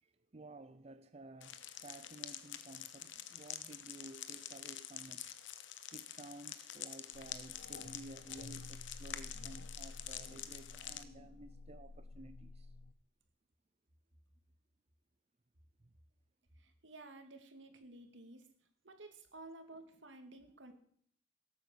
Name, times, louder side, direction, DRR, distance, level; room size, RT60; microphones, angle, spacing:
voice 1, 0.0-5.3 5.9-12.7 15.8-15.9, right 2 dB, 35° right, 0.6 m, -54 dB
sound 1, 1.4-11.0, left 10 dB, 80° left, 1.1 m, -47 dB
sound 2, 7.1-12.9, left 3 dB, 60° left, 0.6 m, -52 dB
voice 2, 16.5-18.5 18.8-20.8, right 2 dB, 80° right, 2.5 m, -53 dB
17.0 x 8.9 x 7.9 m
head